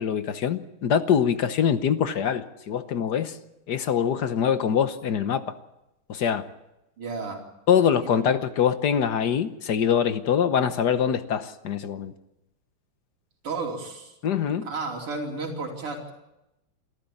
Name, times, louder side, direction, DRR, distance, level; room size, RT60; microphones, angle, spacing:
voice 1, 0.0-3.4 3.7-5.6 6.1-6.5 7.7-12.1 14.2-14.7, left 8 dB, 55° left, 1.4 m, -24 dB
voice 2, 7.0-7.4 8.0-8.3 13.4-14.2 14.6-16.0, right 3 dB, 85° right, 4.0 m, -32 dB
27.5 x 13.5 x 8.5 m
omnidirectional pair, 2.4 m